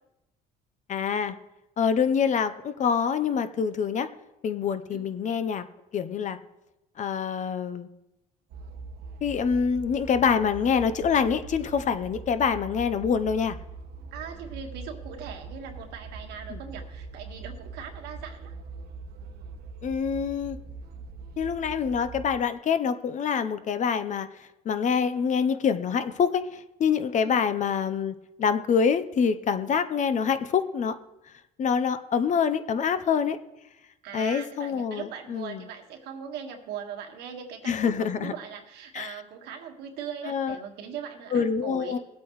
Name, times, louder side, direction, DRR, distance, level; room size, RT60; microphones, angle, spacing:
voice 1, 0.9-1.3 1.8-4.1 4.4-5.6 5.9-6.4 7.0-7.9 9.2-13.6 16.5-16.6 19.8-20.6 21.4-24.3 24.6-30.9 31.6-33.4 34.1-35.6 37.7-38.3 38.9-39.1 40.3-40.6 41.3-42.0, left 6 dB, 45° left, 11 dB, 0.8 m, -26 dB
sound 1, 8.5-22.4, right 4 dB, 70° right, 1.2 m, -42 dB
voice 2, 14.1-18.6 27.2-27.4 34.0-42.0, right 7 dB, 85° right, 3 dB, 1.7 m, -40 dB
20.0 x 8.4 x 3.2 m, 0.95 s
cardioid pair, 110°, 17 cm